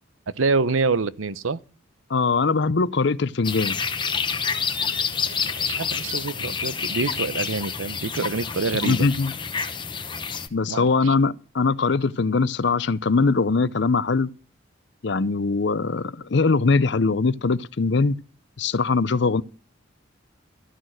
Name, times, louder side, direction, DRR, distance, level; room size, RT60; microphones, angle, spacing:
voice 1, 0.4-1.6 5.3-9.1 10.7-11.1, right 4 dB, 90° right, 0.8 m, -26 dB
voice 2, 2.1-3.8 8.8-9.3 10.5-14.3 15.0-18.2 18.6-19.4, left 4 dB, 60° left, 0.6 m, -21 dB
sound 1, 3.4-10.5, left 6 dB, 25° left, 0.9 m, -28 dB
14.0 x 6.4 x 9.2 m
head